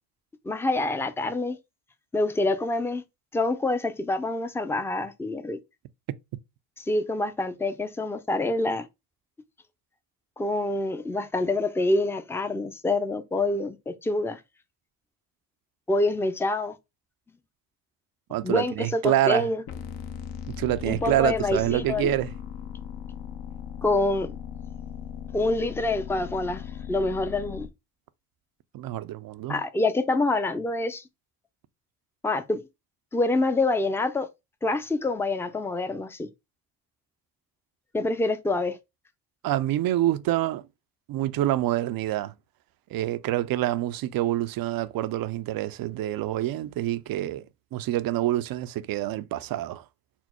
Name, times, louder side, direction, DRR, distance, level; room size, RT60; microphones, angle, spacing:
voice 1, 0.4-1.6 2.1-3.0 3.3-5.6 6.8-8.9 10.4-14.4 15.9-16.8 18.4-19.6 20.9-22.1 23.8-24.3 25.3-27.7 29.5-31.0 32.2-32.6 33.1-34.3 34.6-36.3 37.9-38.8, left 2 dB, 5° left, 0.5 m, -26 dB
voice 2, 18.3-19.5 20.6-22.3 28.7-29.6 39.4-40.6 41.1-42.3 42.9-47.5 47.7-49.8, right 14 dB, 50° right, 0.5 m, -26 dB
sound 1, 19.7-27.7, left 8 dB, 55° left, 0.8 m, -38 dB
4.3 x 2.0 x 4.2 m
hypercardioid pair, 55°, 47 cm